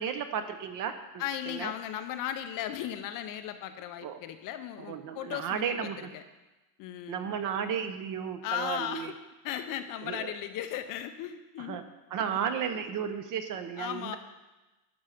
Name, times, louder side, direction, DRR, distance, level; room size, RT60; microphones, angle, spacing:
voice 1, 0.0-1.7 4.0-4.2 4.8-6.1 7.1-9.1 10.0-10.3 11.6-11.8 12.1-14.2, right 7 dB, 40° right, 9 dB, 0.8 m, -34 dB
voice 2, 1.2-6.2 6.8-7.3 8.4-9.1 9.4-11.8 12.3-12.4 13.8-14.2, left 10 dB, 40° left, 9 dB, 0.6 m, -36 dB
11.5 x 5.6 x 5.0 m, 1.1 s
supercardioid pair, 135°, 50 cm